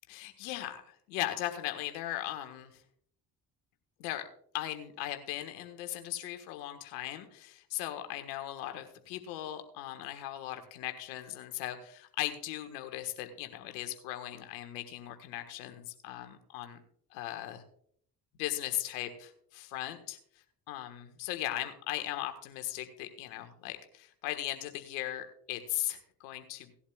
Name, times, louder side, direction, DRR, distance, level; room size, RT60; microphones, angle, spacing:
voice 1, 0.1-2.8 4.0-4.3 4.5-16.8 17.1-17.6 18.4-20.2 20.7-26.7, left 14 dB, 85° left, 7 dB, 1.6 m, -38 dB
18.5 x 11.5 x 2.4 m, 0.63 s
hypercardioid pair, 50°, 47 cm